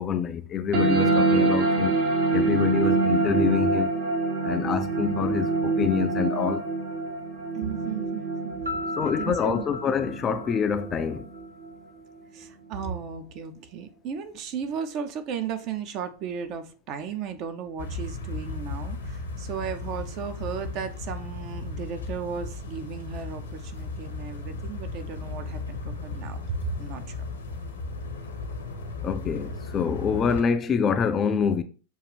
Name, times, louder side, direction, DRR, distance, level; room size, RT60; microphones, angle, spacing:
voice 1, 0.0-1.9 2.3-3.9 4.4-6.6 9.0-11.3 29.0-31.6, left 7 dB, 25° left, 0.4 m, -26 dB
sound 1, 0.7-11.7, right 3 dB, 55° right, 1.1 m, -26 dB
voice 2, 7.5-9.7 12.3-27.2, right 7 dB, 40° right, 0.6 m, -35 dB
Piano, 8.6-11.5, left 3 dB, 80° right, 0.7 m, -37 dB
sound 2, 17.8-30.4, left 3 dB, 70° left, 0.8 m, -35 dB
6.2 x 2.5 x 3.4 m
figure-of-eight pair, 90°, 0 cm